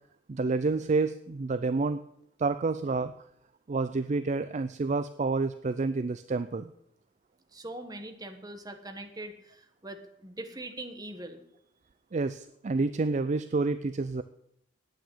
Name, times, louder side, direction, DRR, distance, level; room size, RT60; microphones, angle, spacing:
voice 1, 0.3-2.0 2.4-3.1 3.7-6.7 12.1-14.2, right 3 dB, 35° right, 12 dB, 0.4 m, -29 dB
voice 2, 7.5-11.4, right 1 dB, 20° right, 6 dB, 1.3 m, -42 dB
9.1 x 9.0 x 9.0 m, 0.74 s
head